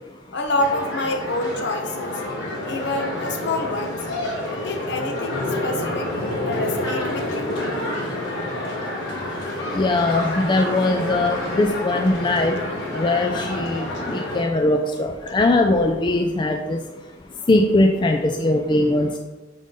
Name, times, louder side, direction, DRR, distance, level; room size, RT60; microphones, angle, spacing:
voice 1, 0.3-2.1 2.5-4.2 4.5-6.1 6.5-7.5, left 2 dB, 60° left, 4 dB, 0.9 m, -27 dB
sound 1, 0.6-14.4, left 1 dB, 85° left, 1.7 m, -28 dB
voice 2, 9.7-12.6 12.9-16.8 17.5-19.2, left 2 dB, 25° left, 3 dB, 0.3 m, -20 dB
5.4 x 5.3 x 3.7 m, 1.1 s
head